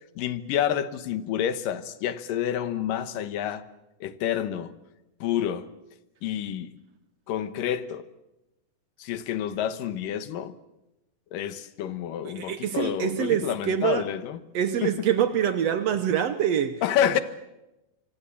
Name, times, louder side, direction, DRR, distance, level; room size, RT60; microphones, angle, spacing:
voice 1, 0.2-3.6 4.0-4.7 5.2-5.7 6.2-6.7 7.3-8.1 9.0-10.5 11.3-14.4 14.8-14.9 16.8-17.2, left 10 dB, 90° left, 2.8 m, -28 dB
voice 2, 12.2-14.0 14.5-16.8, right 9 dB, 65° right, 1.8 m, -25 dB
26.0 x 24.5 x 7.2 m
omnidirectional pair, 3.8 m